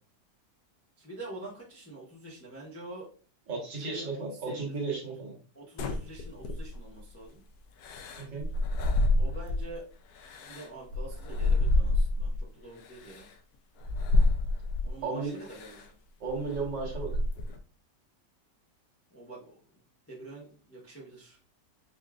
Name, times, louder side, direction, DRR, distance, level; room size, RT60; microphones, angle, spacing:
voice 1, 1.0-3.1 3.7-4.7 5.0-5.1 5.5-7.4 9.2-9.8 10.4-13.3 14.8-15.8 19.1-19.6 20.1-21.4, right 2 dB, 10° left, -4 dB, 0.7 m, -46 dB
voice 2, 3.5-5.3 8.2-8.5 15.0-15.3 16.2-17.2, right 4 dB, 80° right, -2 dB, 2.0 m, -34 dB
sound 1, 5.8-7.0 7.8-9.8 10.2-12.4 13.1-13.2 13.8-15.0 15.5-15.8 16.3-17.6, left 2 dB, 70° left, 1.0 m, -28 dB
5.3 x 2.4 x 2.4 m, 0.39 s
omnidirectional pair, 1.9 m